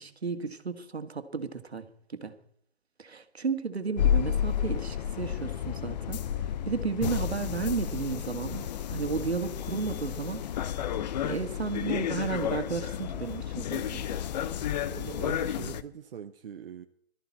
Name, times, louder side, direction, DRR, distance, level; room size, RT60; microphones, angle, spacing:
voice 1, 0.0-2.3 3.0-10.4 11.2-14.0, right 5 dB, 85° right, 1.9 m, -33 dB
sound 1, 4.0-15.8, left 9 dB, 45° left, 0.9 m, -31 dB
voice 2, 14.7-16.9, right 8 dB, 60° right, 1.0 m, -42 dB
19.5 x 13.5 x 4.2 m
figure-of-eight pair, 130°, 31 cm